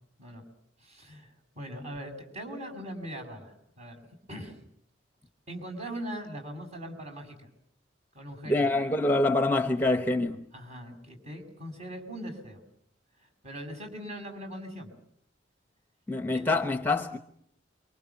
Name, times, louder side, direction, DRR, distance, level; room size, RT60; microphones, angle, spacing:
voice 1, 0.8-4.0 4.3-4.6 5.5-7.5 8.1-8.7 10.5-12.6 13.4-14.9 16.3-16.6, equal, 35° right, 6.7 m, -41 dB
voice 2, 8.5-10.4 16.1-17.2, left 2 dB, 10° left, 1.0 m, -26 dB
28.0 x 24.0 x 7.2 m
head